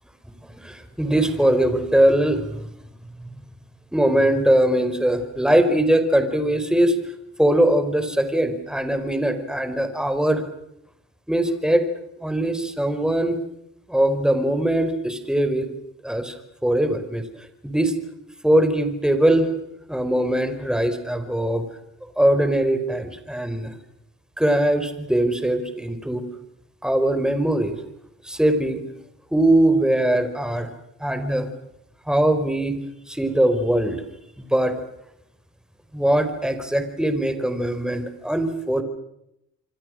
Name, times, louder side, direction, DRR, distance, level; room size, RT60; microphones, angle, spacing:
voice 1, 0.6-2.6 3.9-7.0 7.4-10.4 11.3-11.9 12.2-13.4 13.9-15.7 16.0-17.2 17.6-17.9 18.4-19.5 19.9-21.6 22.2-23.7 24.4-26.2 26.8-27.7 28.2-28.8 29.3-30.7 31.0-31.5 32.1-32.8 33.1-34.0 34.4-34.7 35.9-38.8, right 1 dB, ahead, 8 dB, 4.7 m, -21 dB
27.0 x 25.5 x 6.4 m, 0.80 s
cardioid pair, 90°, 30 cm